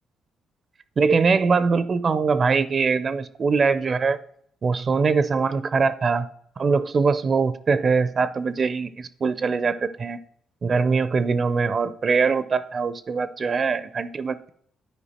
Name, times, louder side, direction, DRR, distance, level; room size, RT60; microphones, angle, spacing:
voice 1, 1.0-4.2 4.6-6.3 6.6-10.2 10.6-14.5, right 5 dB, 40° right, 14 dB, 0.4 m, -22 dB
10.0 x 4.6 x 4.2 m, 0.66 s
cardioid pair, 90°, 0 cm